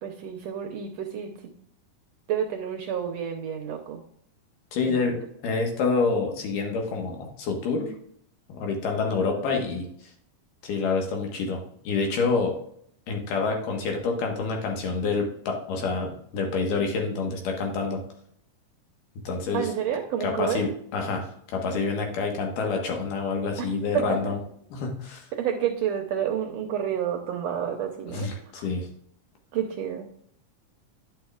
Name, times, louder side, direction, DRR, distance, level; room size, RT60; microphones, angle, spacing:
voice 1, 0.0-1.5 2.3-4.0 4.8-5.2 19.5-20.6 23.6-24.3 25.3-28.3 28.5-28.7 29.5-30.1, right 9 dB, 75° right, 2 dB, 1.6 m, -29 dB
voice 2, 4.7-5.2 5.4-7.9 8.5-9.9 10.6-12.6 13.1-18.0 19.2-19.7 20.2-24.4 24.7-25.3 28.1-28.9, left 4 dB, 90° left, 2 dB, 2.9 m, -27 dB
9.9 x 6.3 x 2.4 m, 0.65 s
omnidirectional pair, 3.7 m